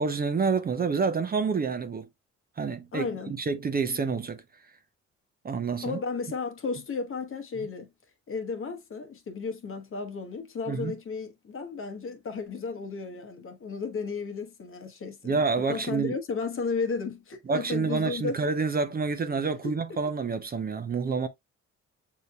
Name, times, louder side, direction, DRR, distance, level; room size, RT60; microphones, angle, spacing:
voice 1, 0.0-2.1 2.6-4.4 5.4-6.0 10.7-10.9 15.2-16.1 17.5-21.3, right 4 dB, 30° right, 0.6 m, -28 dB
voice 2, 2.9-3.3 5.8-7.9 8.3-15.3 15.7-18.4 19.4-20.0, left 4 dB, 45° left, 1.0 m, -34 dB
6.6 x 2.8 x 2.2 m
cardioid pair, 90°, 30 cm